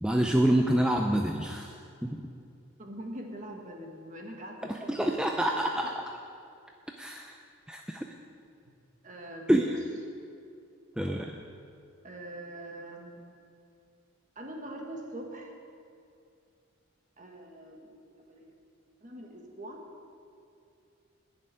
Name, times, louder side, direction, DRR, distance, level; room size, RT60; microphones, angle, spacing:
voice 1, 0.0-1.7 2.0-2.2 4.9-6.0 7.0-7.4 7.7-8.0 9.5-9.6 11.0-11.3, right 1 dB, 5° right, 2 dB, 0.4 m, -26 dB
voice 2, 2.8-5.4 9.0-9.7 12.0-13.2 14.3-15.6 17.2-17.9 18.2-18.5 19.0-19.8, right 1 dB, 35° right, 1 dB, 1.4 m, -43 dB
10.5 x 6.7 x 9.4 m, 2.5 s
head